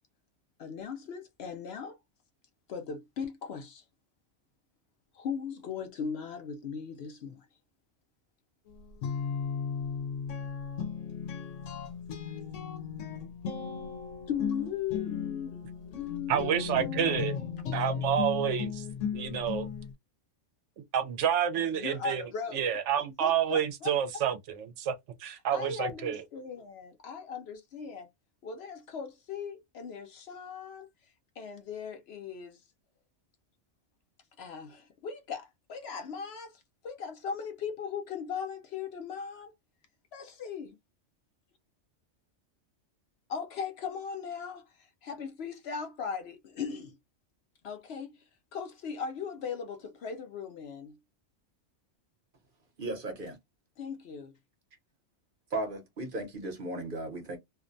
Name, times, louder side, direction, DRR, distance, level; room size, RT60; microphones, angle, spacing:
voice 1, 0.6-2.0 2.7-3.8 5.1-7.5 14.3-17.3 21.7-22.7 23.2-23.9 25.5-28.1 28.4-30.9 31.4-32.6 34.4-39.5 40.1-40.7 43.3-44.6 45.0-47.0 47.6-48.1 48.5-51.0 53.8-54.3, left 6 dB, 65° left, 0.8 m, -38 dB
Guitar, 8.7-19.9, left 7 dB, 90° left, 1.0 m, -36 dB
voice 2, 16.3-17.4 17.7-18.8 19.1-19.7 20.9-22.2 22.5-24.9 25.2-26.2, right 9 dB, 75° right, 0.9 m, -29 dB
voice 3, 52.8-53.4 55.5-57.4, right 2 dB, 50° right, 0.9 m, -36 dB
2.5 x 2.1 x 2.5 m
omnidirectional pair, 1.3 m